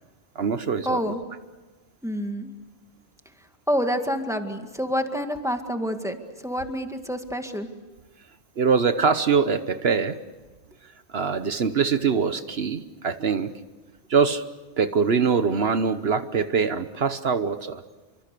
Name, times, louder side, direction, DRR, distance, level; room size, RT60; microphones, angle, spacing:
voice 1, 0.3-1.0 8.6-10.2 11.1-13.5 14.1-14.4 14.8-17.8, right 5 dB, 65° right, 11 dB, 1.2 m, -23 dB
voice 2, 0.9-1.2 2.0-2.5 3.7-6.2 6.4-7.7, equal, 5° right, 5 dB, 1.9 m, -27 dB
28.5 x 24.5 x 6.8 m, 1.2 s
omnidirectional pair, 1.1 m